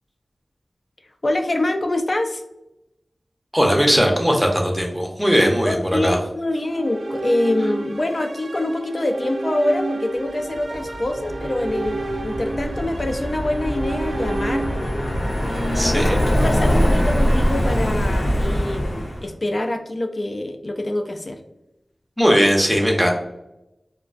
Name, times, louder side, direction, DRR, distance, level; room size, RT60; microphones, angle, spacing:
voice 1, 1.2-2.4 5.6-15.0 15.4-21.4 22.2-22.4, left 1 dB, 50° left, 5 dB, 0.3 m, -25 dB
voice 2, 3.5-6.2 15.7-16.1 22.2-23.1, equal, 5° right, 1 dB, 0.6 m, -18 dB
sound 1, 6.6-16.8, right 2 dB, 70° right, 0.3 m, -31 dB
Car passing by, 10.7-19.3, equal, 85° left, 0.7 m, -23 dB
2.4 x 2.1 x 2.4 m, 0.89 s
wide cardioid pair, 55°, 0 cm